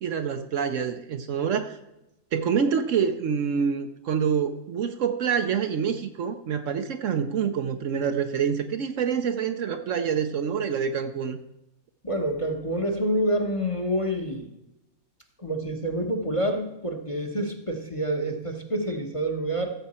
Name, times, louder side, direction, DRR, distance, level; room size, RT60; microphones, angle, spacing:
voice 1, 0.0-1.8 2.3-11.4, right 7 dB, 65° right, 8 dB, 1.0 m, -26 dB
voice 2, 12.0-14.5 15.4-19.7, right 1 dB, 25° left, 4 dB, 1.0 m, -27 dB
14.5 x 7.3 x 4.3 m, 0.92 s
omnidirectional pair, 1.5 m